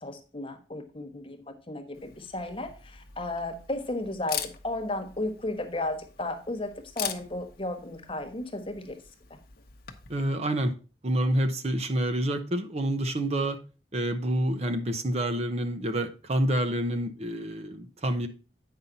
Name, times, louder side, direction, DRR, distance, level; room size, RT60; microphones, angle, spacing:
voice 1, 0.0-9.0, left 2 dB, 30° left, 6 dB, 1.3 m, -34 dB
Camera, 1.9-10.3, left 9 dB, 55° left, 0.9 m, -42 dB
voice 2, 10.1-10.7 11.0-13.6 13.9-18.3, right 1 dB, 35° right, 7 dB, 0.8 m, -28 dB
8.8 x 5.5 x 4.0 m, 0.35 s
head